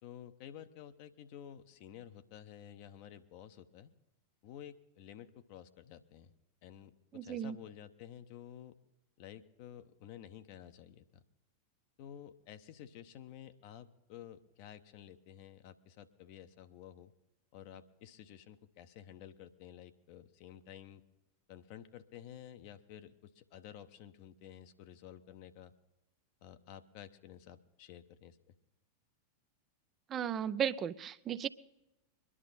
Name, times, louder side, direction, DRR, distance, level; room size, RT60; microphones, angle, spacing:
voice 1, 0.0-3.9 4.4-6.3 6.6-8.8 9.2-11.2 12.0-17.1 17.5-21.0 21.5-25.7 26.4-28.5, left 10 dB, 45° left, 10 dB, 0.9 m, -52 dB
voice 2, 7.1-7.6 30.1-31.5, right 9 dB, 30° right, 13 dB, 0.5 m, -35 dB
22.5 x 11.0 x 4.2 m, 0.97 s
figure-of-eight pair, 90°, 0 cm